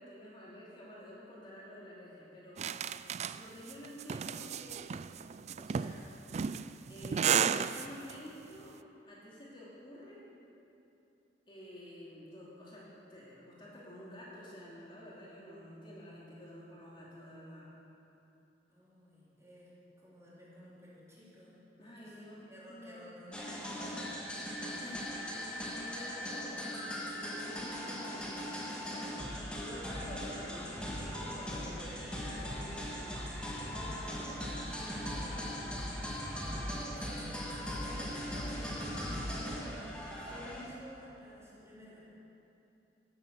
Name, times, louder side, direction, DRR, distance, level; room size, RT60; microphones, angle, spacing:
voice 1, 0.0-2.6 3.3-4.9 5.6-6.1 6.9-8.8 9.1-10.2 11.5-17.7 21.8-23.1 25.1-29.3 29.5-33.2 33.6-35.8 36.5-36.8, equal, 30° left, -7 dB, 2.8 m, -50 dB
sound 1, 2.6-8.1, right 7 dB, 40° right, 0.3 m, -33 dB
voice 2, 18.7-19.7 20.0-21.5 22.0-25.2 25.5-25.7 31.8-32.1 36.9-37.3 37.6-42.0, left 1 dB, 15° right, -9 dB, 4.2 m, -52 dB
sound 2, 23.3-40.6, equal, 5° left, 2.0 m, -39 dB
17.0 x 9.0 x 6.7 m, 2.8 s
head